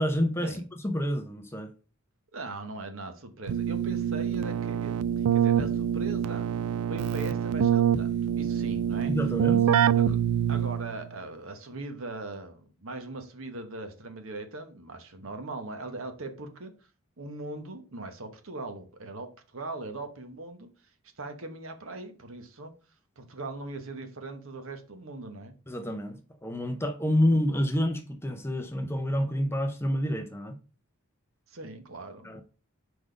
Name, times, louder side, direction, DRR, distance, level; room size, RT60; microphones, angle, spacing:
voice 1, 0.0-1.7 9.1-9.6 25.7-30.6 32.2-32.4, equal, 10° left, 0.6 m, -28 dB
voice 2, 2.3-6.5 6.9-9.1 10.0-10.2 10.5-16.7 17.2-20.7 21.2-22.7 23.2-25.5 31.5-32.3, right 2 dB, 65° right, 1.1 m, -40 dB
Keyboard (musical), 3.5-11.0, right 9 dB, 85° right, 0.3 m, -26 dB
5.0 x 4.0 x 5.0 m
head